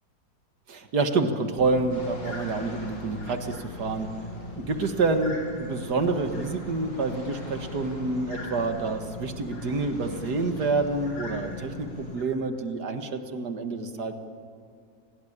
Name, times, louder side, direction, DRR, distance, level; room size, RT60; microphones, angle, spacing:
voice 1, 0.7-4.1 4.5-14.1, right 3 dB, 60° right, 6 dB, 2.2 m, -28 dB
sound 1, 1.6-12.2, left 1 dB, 25° left, 1.7 m, -40 dB
sound 2, 1.9-12.3, left 2 dB, 80° left, 5.5 m, -45 dB
29.0 x 19.0 x 8.8 m, 2.3 s
omnidirectional pair, 2.0 m